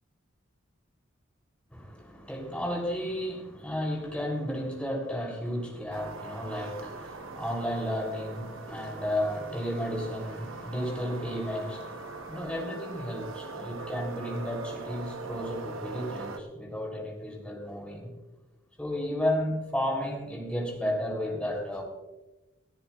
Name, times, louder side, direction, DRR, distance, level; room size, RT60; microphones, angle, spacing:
voice 1, 1.7-18.1 18.8-21.8, equal, 5° left, 0 dB, 3.4 m, -33 dB
sound 1, 5.9-16.4, right 3 dB, 80° right, 1.1 m, -41 dB
29.0 x 10.5 x 2.5 m, 1.1 s
head